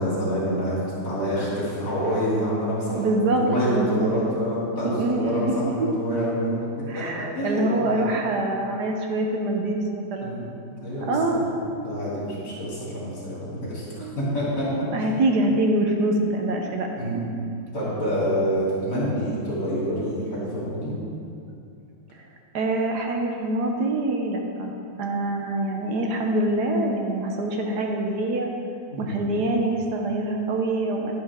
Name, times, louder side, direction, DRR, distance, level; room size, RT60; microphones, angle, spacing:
voice 1, 0.0-6.6 6.9-8.1 10.2-10.5 10.8-11.1 11.8-14.7 15.0-15.1 17.0-17.3 17.7-21.0 28.9-29.2, equal, 60° left, -8 dB, 3.6 m, -27 dB
voice 2, 3.0-4.1 5.0-5.5 6.9-10.4 11.1-11.4 11.7-11.9 14.0-14.2 14.6-16.9 22.5-24.7 25.0-28.5 29.0-31.2, right 2 dB, 65° right, 2 dB, 1.4 m, -25 dB
10.5 x 10.0 x 3.6 m, 2.5 s
omnidirectional pair, 2.0 m